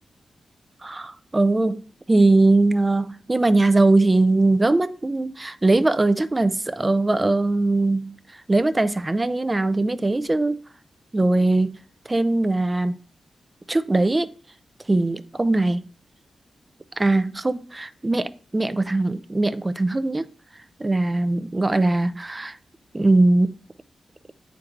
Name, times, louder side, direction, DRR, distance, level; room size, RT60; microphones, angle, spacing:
voice 1, 0.8-1.8 2.1-10.6 11.1-11.8 12.1-13.0 13.7-14.3 14.9-15.9 17.0-20.3 20.8-22.6 22.9-23.6, right 2 dB, 25° right, 0.4 m, -21 dB
8.5 x 4.5 x 2.5 m
cardioid pair, 70°, 0 cm